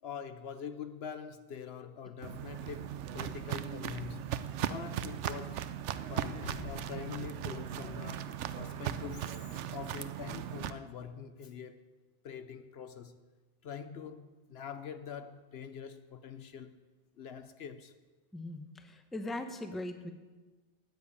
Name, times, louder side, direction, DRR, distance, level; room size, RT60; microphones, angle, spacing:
voice 1, 0.0-5.7 6.1-12.0 12.2-13.2 13.6-16.8 17.1-17.9, left 7 dB, 65° left, 0.9 m, -44 dB
Walk footsteps, 2.2-10.7, right 10 dB, 85° right, 0.9 m, -38 dB
voice 2, 18.3-20.1, left 1 dB, ahead, 0.8 m, -40 dB
10.5 x 9.4 x 8.3 m
omnidirectional pair, 1.2 m